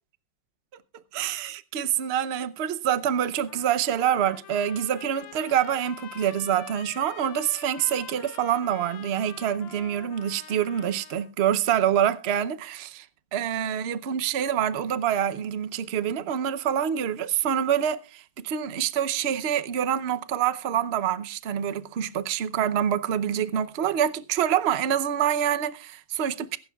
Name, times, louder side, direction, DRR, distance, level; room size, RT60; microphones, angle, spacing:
voice 1, 1.1-13.1 13.3-26.6, right 9 dB, 50° right, 0.7 m, -26 dB
Trumpet, 3.4-11.3, left 11 dB, 85° left, 1.5 m, -46 dB
22.5 x 12.0 x 2.4 m
omnidirectional pair, 2.0 m